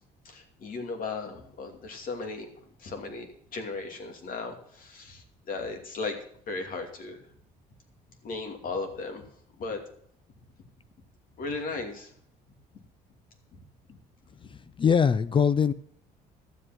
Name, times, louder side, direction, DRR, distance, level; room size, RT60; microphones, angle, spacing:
voice 1, 0.2-2.5 2.8-6.2 6.5-7.2 8.2-9.3 9.6-9.8 11.4-12.1, left 3 dB, 55° left, 4 dB, 2.7 m, -36 dB
voice 2, 14.4-15.7, left 6 dB, 30° left, 17 dB, 0.4 m, -23 dB
12.0 x 7.9 x 5.9 m, 0.64 s
cardioid pair, 110°, 17 cm